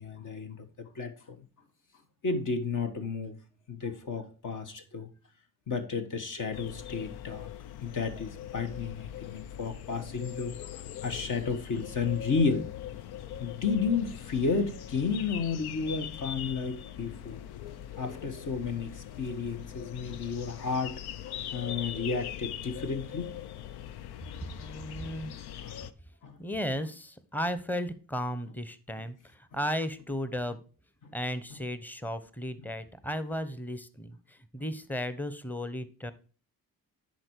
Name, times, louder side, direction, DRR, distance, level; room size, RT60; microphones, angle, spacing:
voice 1, 0.0-1.5 2.2-3.4 3.7-5.1 5.7-7.5 7.8-12.7 13.4-17.4 17.7-21.0 21.2-23.3 25.6-25.8 26.2-26.4 31.0-31.1 34.6-34.7, left 5 dB, 55° left, 1.5 m, -32 dB
sound 1, 6.5-25.9, left 11 dB, 85° left, 0.6 m, -41 dB
voice 2, 24.6-25.3 26.4-30.6 31.1-36.1, equal, 5° left, 0.9 m, -35 dB
10.0 x 4.4 x 4.6 m
cardioid pair, 75°, 38 cm